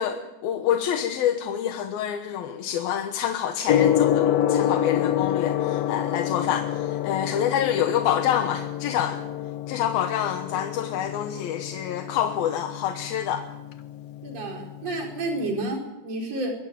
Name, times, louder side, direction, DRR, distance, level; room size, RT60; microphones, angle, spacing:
voice 1, 0.0-9.2 9.7-13.5, left 9 dB, 80° left, 6 dB, 3.1 m, -27 dB
Gong, 3.7-15.6, left 11 dB, 65° left, 1.7 m, -27 dB
voice 2, 14.2-16.5, right 2 dB, 45° right, 1 dB, 5.7 m, -30 dB
24.0 x 17.0 x 9.0 m, 1.0 s
omnidirectional pair, 4.2 m